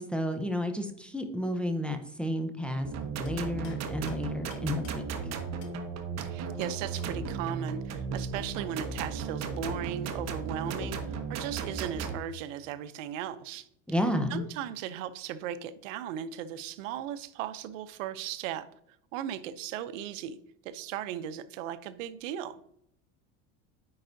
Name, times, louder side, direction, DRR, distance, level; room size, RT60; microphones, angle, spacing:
voice 1, 0.0-5.0 13.9-14.5, left 1 dB, 5° left, 5 dB, 0.6 m, -31 dB
sound 1, 2.8-12.2, right 5 dB, 45° right, 1.0 m, -35 dB
sound 2, 3.2-5.8 6.2-7.3 9.3-9.4 9.6-11.3, left 5 dB, 85° left, 1.3 m, -50 dB
voice 2, 6.2-13.7 14.3-18.7 19.1-20.4 20.6-22.6, right 10 dB, 85° right, 14 dB, 0.7 m, -37 dB
9.5 x 4.7 x 2.6 m, 0.73 s
supercardioid pair, 120°, 37 cm